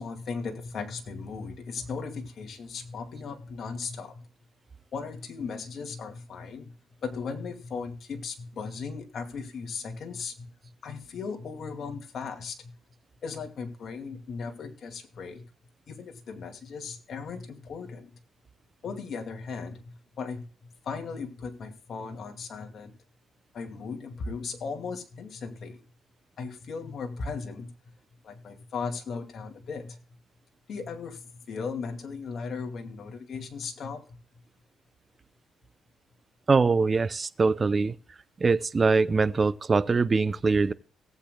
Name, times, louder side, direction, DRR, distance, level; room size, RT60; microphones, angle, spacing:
voice 1, 0.0-4.2 4.9-6.7 7.0-10.5 10.8-12.7 13.2-15.4 15.9-18.1 18.8-22.9 23.5-25.8 26.4-27.7 28.2-30.0 30.7-34.2, left 5 dB, 60° left, 2.3 m, -37 dB
voice 2, 36.5-37.9 38.4-40.7, right 4 dB, 30° right, 0.6 m, -23 dB
18.0 x 8.3 x 2.3 m
cardioid pair, 90°, 0 cm